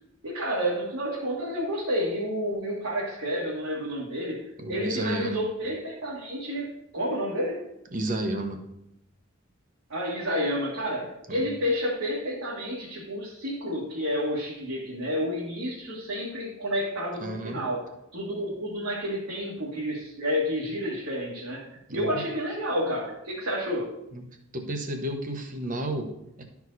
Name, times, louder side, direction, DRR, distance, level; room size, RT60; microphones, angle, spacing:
voice 1, 0.2-4.4 4.7-6.7 6.9-7.6 9.9-17.8 18.1-23.9, equal, 75° right, -6 dB, 1.9 m, -30 dB
voice 2, 4.6-5.4 7.9-8.6 11.3-11.5 17.2-17.6 21.9-22.2 24.1-24.2 24.5-26.4, right 1 dB, 40° right, 4 dB, 1.0 m, -32 dB
12.0 x 4.8 x 4.1 m, 0.83 s
head